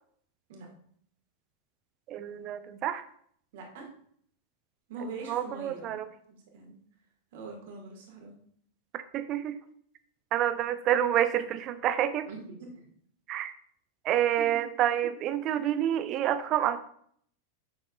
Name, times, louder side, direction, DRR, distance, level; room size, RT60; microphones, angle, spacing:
voice 1, 2.1-3.0 5.3-6.1 9.1-9.6 10.3-12.3 13.3-13.5 14.0-16.8, right 11 dB, 35° right, 12 dB, 0.5 m, -28 dB
voice 2, 3.5-3.9 4.9-6.0 6.3-6.7 7.3-8.3 12.3-12.9 14.4-14.6, right 3 dB, 55° right, 1 dB, 1.9 m, -43 dB
8.6 x 6.4 x 2.4 m, 0.62 s
figure-of-eight pair, 90°, 0 cm